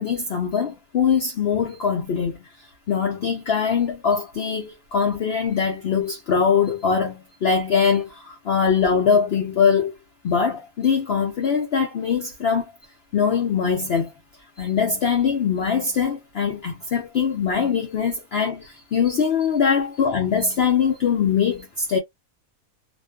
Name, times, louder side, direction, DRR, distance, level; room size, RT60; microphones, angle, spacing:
voice 1, 0.0-2.4 2.9-9.9 10.2-12.6 13.1-14.1 14.6-22.0, left 6 dB, 70° left, 0.6 m, -22 dB
2.5 x 2.2 x 2.2 m
omnidirectional pair, 1.6 m